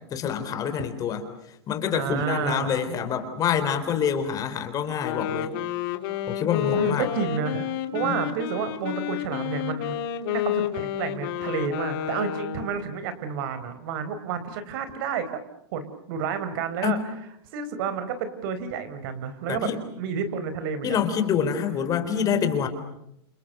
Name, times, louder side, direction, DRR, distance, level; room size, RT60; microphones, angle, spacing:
voice 1, 0.1-1.3 1.7-5.5 6.3-7.1 7.9-8.2 16.8-17.0 19.5-19.8 20.8-22.7, left 8 dB, 25° left, 8 dB, 4.0 m, -26 dB
voice 2, 1.9-2.9 6.7-10.0 10.3-15.3 15.7-17.0 17.5-19.7 20.0-21.0, right 6 dB, 55° right, 11 dB, 4.3 m, -30 dB
Wind instrument woodwind instrument, 4.9-12.8, left 11 dB, 55° left, 3.1 m, -30 dB
29.5 x 27.0 x 6.8 m, 0.79 s
supercardioid pair, 150°, 14 cm